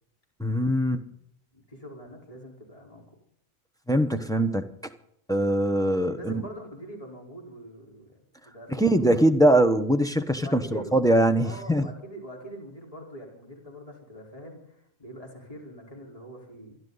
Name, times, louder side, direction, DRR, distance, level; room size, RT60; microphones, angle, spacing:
voice 1, 0.4-1.0 3.9-4.7 5.3-6.4 8.7-11.9, right 1 dB, 5° left, 1.0 m, -22 dB
voice 2, 1.5-3.1 5.9-9.2 10.4-11.1 11.4-16.8, right 1 dB, 30° left, 4.8 m, -43 dB
27.0 x 11.5 x 4.1 m
omnidirectional pair, 1.3 m